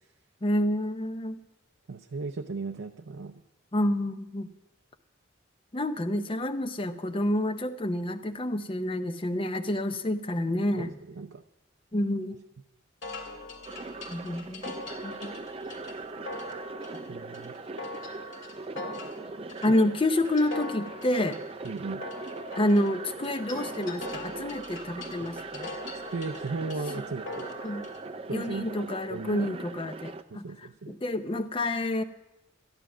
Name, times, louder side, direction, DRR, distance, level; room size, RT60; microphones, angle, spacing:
voice 1, 0.4-1.4 3.7-4.5 5.7-11.0 11.9-12.4 14.1-15.3 19.6-21.4 22.6-25.7 27.6-27.9 28.3-32.0, left 1 dB, 25° left, 10 dB, 0.6 m, -28 dB
voice 2, 1.9-3.3 10.8-11.4 17.1-17.5 21.6-22.0 25.2-25.3 26.1-27.5 28.3-28.7 29.1-29.5 30.3-31.0, right 3 dB, 75° right, 5 dB, 0.6 m, -36 dB
sound 1, 13.0-28.0, left 2 dB, 65° left, 2.1 m, -42 dB
sound 2, 13.6-30.2, right 3 dB, 30° right, 0.5 m, -40 dB
13.0 x 11.5 x 6.1 m, 0.97 s
head